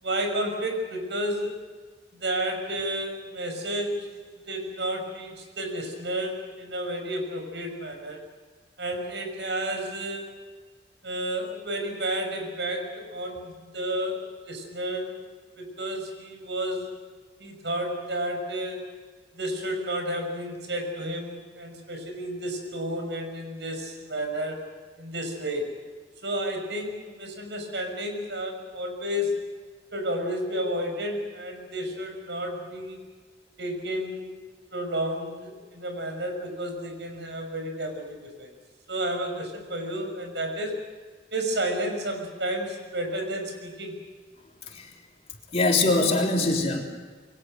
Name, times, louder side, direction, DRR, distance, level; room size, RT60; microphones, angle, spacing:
voice 1, 0.0-1.5 2.1-4.2 4.5-8.2 8.8-10.3 11.0-15.1 15.6-16.9 17.4-18.9 19.3-24.7 25.0-25.7 26.2-29.3 29.9-33.0 33.6-34.3 34.7-38.5 38.9-40.8 41.3-43.9, right 1 dB, 80° right, 4 dB, 6.2 m, -31 dB
voice 2, 45.5-46.8, left 2 dB, 35° left, 0 dB, 3.6 m, -23 dB
28.0 x 23.0 x 6.5 m, 1.4 s
head